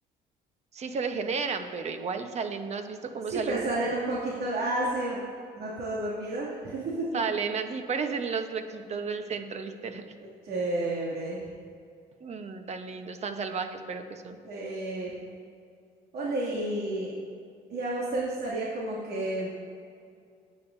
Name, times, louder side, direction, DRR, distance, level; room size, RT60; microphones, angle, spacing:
voice 1, 0.7-3.8 7.1-10.1 12.2-14.4, right 5 dB, 40° right, 7 dB, 1.0 m, -33 dB
voice 2, 3.3-5.2 5.6-7.2 10.4-11.4 14.4-15.1 16.1-17.1 17.7-19.5, right 2 dB, 70° right, -7 dB, 2.6 m, -31 dB
19.5 x 9.1 x 2.7 m, 2.3 s
cardioid pair, 110°, 17 cm